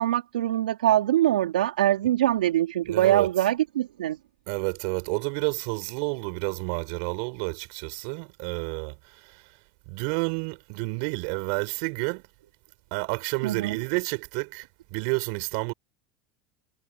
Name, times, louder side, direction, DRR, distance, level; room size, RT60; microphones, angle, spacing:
voice 1, 0.0-4.2 13.4-13.8, right 13 dB, 85° right, 3.8 m, -23 dB
voice 2, 2.8-3.3 4.5-9.5 9.9-12.2 12.9-15.7, right 35 dB, 65° right, 5.8 m, -30 dB
hypercardioid pair, 90°, 5 cm